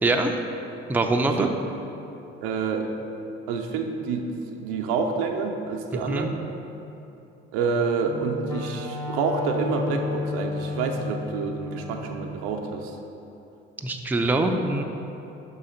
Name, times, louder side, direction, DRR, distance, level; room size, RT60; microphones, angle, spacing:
voice 1, 0.9-1.5 6.1-6.3 13.8-14.8, right 2 dB, 5° right, 3 dB, 0.4 m, -23 dB
voice 2, 2.4-2.9 3.5-6.3 7.5-13.0, right 5 dB, 75° right, 3 dB, 0.6 m, -28 dB
Wind instrument woodwind instrument, 8.0-12.1, left 3 dB, 10° left, 0.8 m, -32 dB
5.6 x 3.9 x 5.5 m, 2.9 s
hypercardioid pair, 55°, 31 cm